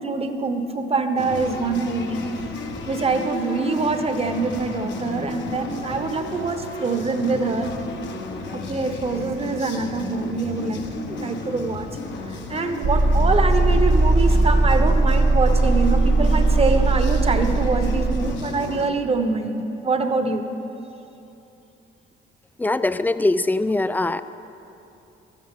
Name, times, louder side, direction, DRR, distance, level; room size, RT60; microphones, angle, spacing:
voice 1, 0.0-2.2 2.8-7.7 8.5-11.9 12.3-20.5, right 3 dB, 30° right, 7 dB, 1.0 m, -24 dB
sound 1, 1.2-18.9, left 3 dB, 65° left, 1.1 m, -34 dB
sound 2, 12.8-18.3, right 2 dB, 65° right, 1.0 m, -19 dB
voice 2, 22.6-24.2, left 2 dB, 10° left, 13 dB, 0.4 m, -22 dB
14.0 x 13.5 x 3.7 m, 2.9 s
cardioid pair, 90°, 20 cm